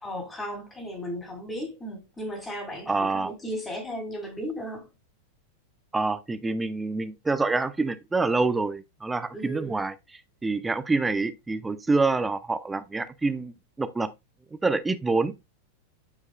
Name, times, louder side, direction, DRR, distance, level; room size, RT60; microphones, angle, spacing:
voice 1, 0.0-4.9 9.3-9.8, equal, 10° left, 2.6 m, -35 dB
voice 2, 2.9-3.3 5.9-9.9 10.4-14.1 14.5-15.3, right 3 dB, 10° right, 0.6 m, -26 dB
9.4 x 4.8 x 2.3 m
figure-of-eight pair, 90°, 0 cm